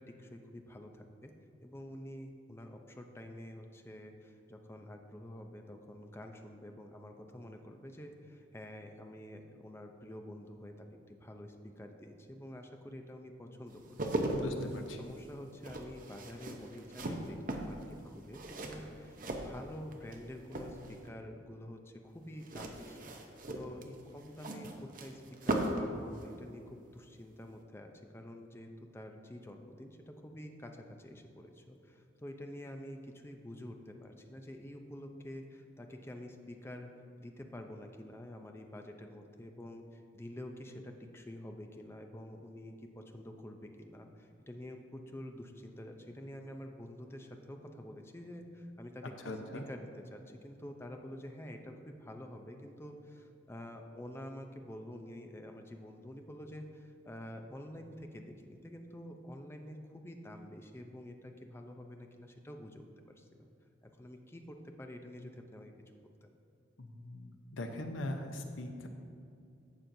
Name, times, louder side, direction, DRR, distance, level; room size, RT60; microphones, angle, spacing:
voice 1, 0.0-1.3 1.6-14.5 15.0-36.9 37.2-63.5 63.8-66.3, left 1 dB, 15° left, 4 dB, 0.5 m, -48 dB
sound 1, 13.7-20.2 20.5-21.1 22.4-25.9 26.2-26.3, right 1 dB, 45° right, 0.7 m, -38 dB
voice 2, 14.3-15.0 49.2-49.6 66.8-68.9, left 1 dB, 85° left, 5 dB, 0.8 m, -40 dB
11.0 x 7.5 x 2.7 m, 2.5 s
head